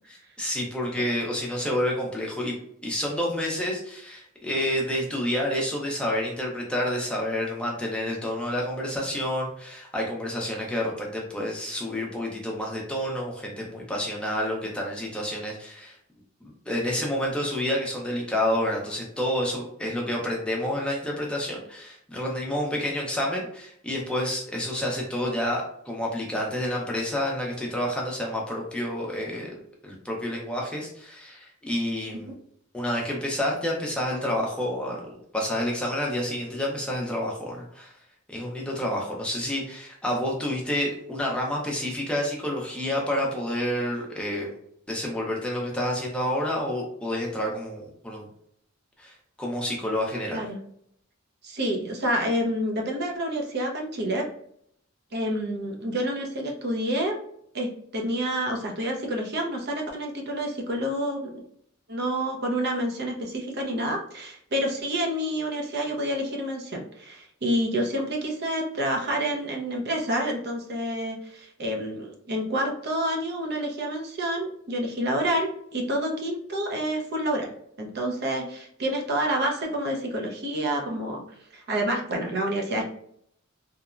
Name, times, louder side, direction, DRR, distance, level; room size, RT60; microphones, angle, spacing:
voice 1, 0.1-2.6 2.8-15.9 16.4-29.5 29.8-32.3 32.7-35.0 35.3-37.9 38.3-44.5 44.9-48.3 49.0-49.1 49.4-50.4, left 1 dB, 5° left, -2 dB, 0.6 m, -29 dB
voice 2, 51.4-54.2 55.1-57.1 57.5-61.3 61.9-77.5 77.8-81.2 81.5-82.8, right 1 dB, 50° right, 1 dB, 0.6 m, -28 dB
2.9 x 2.1 x 2.4 m, 0.69 s
head